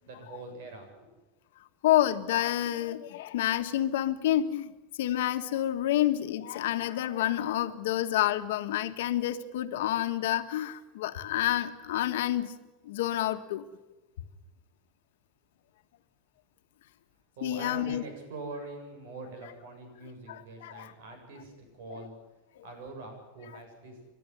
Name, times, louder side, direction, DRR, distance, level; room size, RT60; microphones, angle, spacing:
voice 1, 0.1-1.1 17.4-22.1 22.6-24.0, right 2 dB, 65° right, 5 dB, 7.4 m, -43 dB
voice 2, 1.8-4.7 5.0-12.5 12.8-13.6 17.4-18.0 20.3-20.9 21.9-22.0 22.6-22.7, left 13 dB, 80° left, 9 dB, 1.5 m, -29 dB
29.0 x 12.0 x 9.4 m, 1.1 s
supercardioid pair, 180°, 0 cm